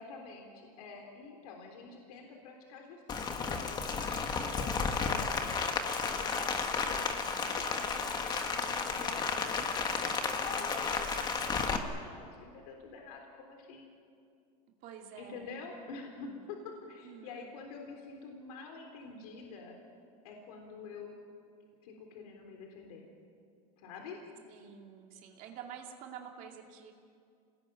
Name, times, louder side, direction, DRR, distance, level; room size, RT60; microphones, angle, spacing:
voice 1, 0.0-6.4 6.8-13.9 15.2-19.8 20.2-21.1 21.8-23.1 23.8-24.2, left 4 dB, 70° left, 2 dB, 3.8 m, -48 dB
Rain, 3.1-11.8, left 5 dB, 20° left, 1.8 m, -33 dB
voice 2, 7.1-7.6 9.5-9.7 10.6-10.9 14.8-15.6 16.1-16.5 17.0-17.5 24.4-26.9, right 8 dB, 45° right, 2 dB, 2.4 m, -50 dB
28.0 x 19.5 x 9.2 m, 2.4 s
supercardioid pair, 155°, 20 cm